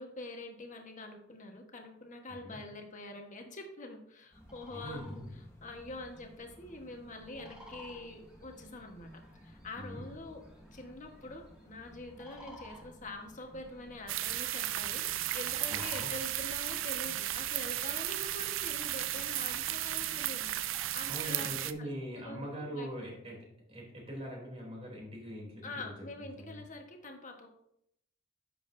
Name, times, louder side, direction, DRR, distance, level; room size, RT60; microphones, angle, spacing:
voice 1, 0.0-5.2 5.6-10.4 10.7-21.9 22.1-23.1 25.6-27.5, left 2 dB, 40° left, 3 dB, 1.3 m, -45 dB
voice 2, 2.3-2.6 4.7-5.3 9.7-10.0 15.7-16.1 21.1-25.7 26.2-26.6, equal, 30° right, -2 dB, 3.1 m, -42 dB
sound 1, 4.3-21.6, equal, 15° left, 1.2 m, -57 dB
sound 2, 4.4-20.9, left 1 dB, 5° right, 1.9 m, -58 dB
sound 3, 14.1-21.7, right 13 dB, 85° right, 0.5 m, -34 dB
10.5 x 7.6 x 2.7 m, 0.75 s
head